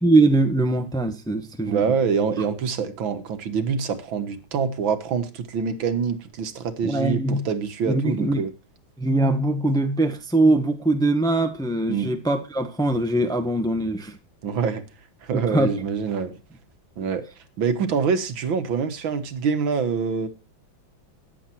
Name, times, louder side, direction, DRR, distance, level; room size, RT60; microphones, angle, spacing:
voice 1, 0.0-1.9 6.8-7.4 7.8-8.4 9.0-14.2 15.3-15.7, right 2 dB, ahead, 1.2 m, -22 dB
voice 2, 1.7-8.5 11.9-12.1 14.4-14.8 15.2-16.4 17.0-17.2 17.6-20.3, right 6 dB, 70° right, 2.1 m, -25 dB
14.0 x 10.0 x 4.5 m
omnidirectional pair, 2.2 m